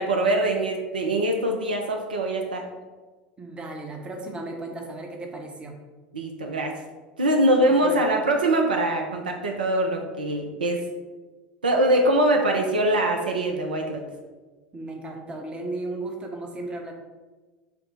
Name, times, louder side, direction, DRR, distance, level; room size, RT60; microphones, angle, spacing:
voice 1, 0.0-2.7 6.1-6.7 7.2-10.8 11.6-14.0, right 1 dB, 75° right, 3 dB, 0.4 m, -23 dB
voice 2, 3.4-5.8 7.7-8.0 14.7-17.0, right 2 dB, 20° right, 2 dB, 0.7 m, -35 dB
4.9 x 2.0 x 4.4 m, 1.3 s
figure-of-eight pair, 75°, 5 cm